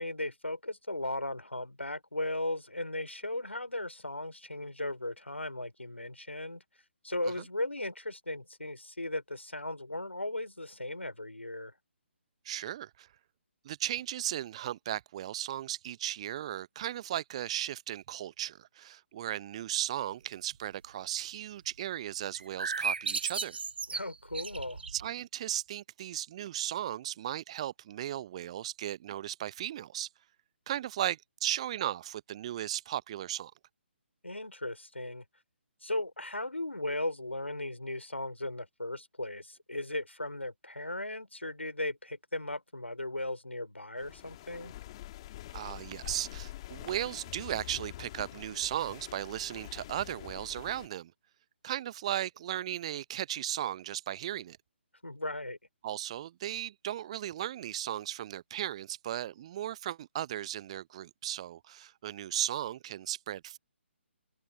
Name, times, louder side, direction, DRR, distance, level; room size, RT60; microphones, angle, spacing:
voice 1, 0.0-6.6 7.0-11.7 23.9-24.8 34.2-35.2 35.8-44.7 55.0-55.6, left 1 dB, 80° left, 4.8 m, -37 dB
voice 2, 12.4-13.1 13.6-23.6 24.9-30.1 30.7-33.5 45.5-51.1 51.6-54.6 55.8-63.6, right 12 dB, 30° right, 0.6 m, -36 dB
sound 1, 22.3-25.1, right 5 dB, 60° right, 3.8 m, -35 dB
sound 2, 44.0-50.9, left 15 dB, 30° left, 2.3 m, -46 dB
figure-of-eight pair, 140°, 7 cm